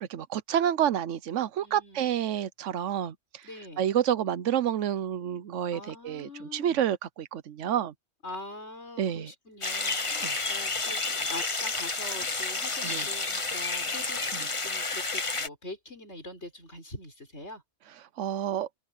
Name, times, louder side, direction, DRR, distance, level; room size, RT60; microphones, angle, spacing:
voice 1, 0.0-3.4 3.8-7.9 9.0-9.3 10.2-10.4 12.8-13.1 14.3-14.5 18.2-18.7, right 10 dB, 90° right, 1.1 m, -29 dB
voice 2, 1.6-2.1 3.4-3.8 5.7-6.8 8.2-17.6, left 2 dB, 65° left, 7.0 m, -43 dB
sound 1, 9.6-15.5, left 3 dB, 25° left, 1.2 m, -30 dB
omnidirectional pair, 1.2 m